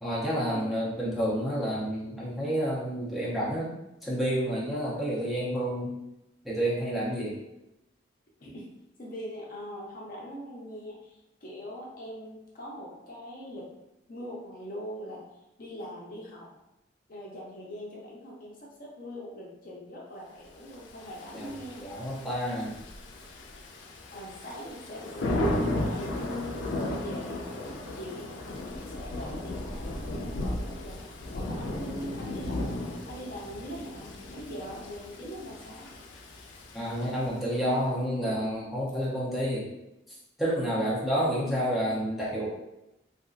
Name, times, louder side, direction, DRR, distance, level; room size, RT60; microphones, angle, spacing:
voice 1, 0.0-6.0 6.4-7.3 21.3-21.5 21.8-22.8 36.7-39.6 40.1-42.5, equal, ahead, -7 dB, 0.6 m, -29 dB
voice 2, 9.0-13.7 14.1-15.2 15.6-16.5 17.1-21.9 24.1-28.5 28.8-30.0 30.4-35.9, equal, 50° left, -3 dB, 0.6 m, -42 dB
Thunder / Rain, 20.9-37.5, left 1 dB, 85° left, 0.4 m, -35 dB
2.9 x 2.5 x 2.4 m, 0.91 s
head